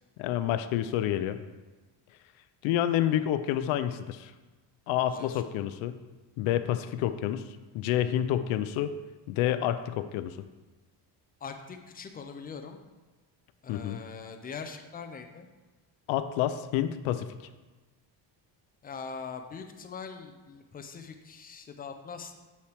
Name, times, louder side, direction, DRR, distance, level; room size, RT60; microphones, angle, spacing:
voice 1, 0.2-1.4 2.6-4.3 4.9-5.9 6.4-7.5 7.7-8.9 9.3-10.4 13.7-14.0 16.1-17.3, left 11 dB, 85° left, 11 dB, 0.6 m, -28 dB
voice 2, 5.1-5.4 11.4-12.8 13.6-15.5 18.8-22.3, left 5 dB, 20° left, 6 dB, 0.4 m, -42 dB
7.7 x 5.6 x 3.4 m, 1.2 s
cardioid pair, 150°, 46 cm